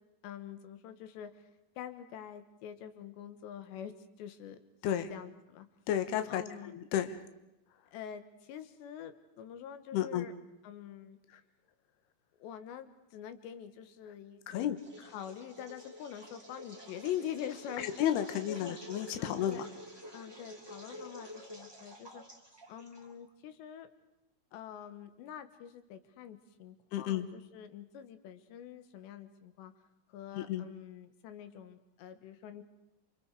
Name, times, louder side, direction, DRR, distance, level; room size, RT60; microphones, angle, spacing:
voice 1, 0.2-1.3 1.8-4.6 5.1-5.7 6.3-6.7 7.9-10.3 10.6-11.2 12.4-17.9 18.5-18.8 19.2-19.6 20.1-22.2 22.7-23.9 24.5-29.7 30.1-32.6, left 10 dB, 90° left, 9 dB, 3.6 m, -45 dB
voice 2, 5.9-7.2 9.9-10.3 14.5-14.8 17.8-19.7 26.9-27.3 30.3-30.7, left 11 dB, 75° left, 8 dB, 3.2 m, -32 dB
sound 1, 14.8-23.3, equal, 10° right, 1.9 m, -49 dB
28.5 x 28.0 x 4.8 m, 0.91 s
omnidirectional pair, 4.9 m